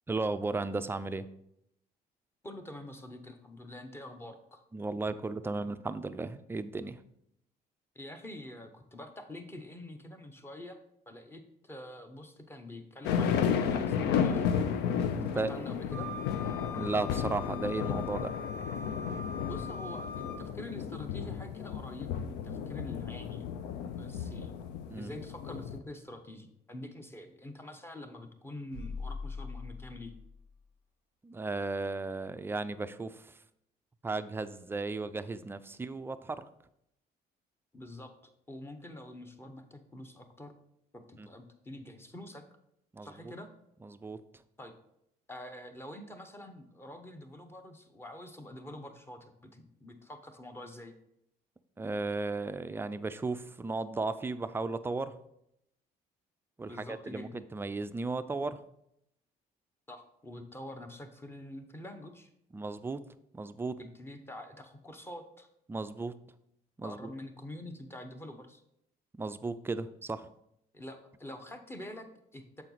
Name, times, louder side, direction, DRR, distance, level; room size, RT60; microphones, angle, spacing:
voice 1, 0.1-1.3 4.7-7.0 15.1-15.5 16.7-18.3 24.9-25.1 31.2-33.3 34.0-36.5 41.2-41.3 42.9-43.3 43.8-44.2 51.8-55.2 56.6-58.6 62.5-63.0 63.3-63.8 65.7-66.1 66.8-67.1 69.2-70.3, right 3 dB, 15° right, 11 dB, 0.3 m, -35 dB
voice 2, 2.4-4.6 7.9-10.8 11.1-14.5 15.3-16.1 19.5-23.7 24.0-24.5 25.0-30.1 37.7-38.1 38.5-40.5 40.9-42.4 43.0-43.5 44.6-44.7 45.3-50.9 56.6-57.4 59.9-62.3 63.8-65.5 66.8-68.6 70.7-72.6, left 1 dB, 15° left, 6 dB, 0.8 m, -46 dB
sound 1, 13.0-25.8, left 7 dB, 90° left, 0.5 m, -33 dB
Wind instrument woodwind instrument, 15.9-20.4, left 3 dB, 50° left, 1.7 m, -43 dB
sound 2, 28.7-30.6, left 4 dB, 70° left, 2.1 m, -41 dB
6.9 x 4.4 x 4.0 m, 0.77 s
cardioid pair, 110°, 17 cm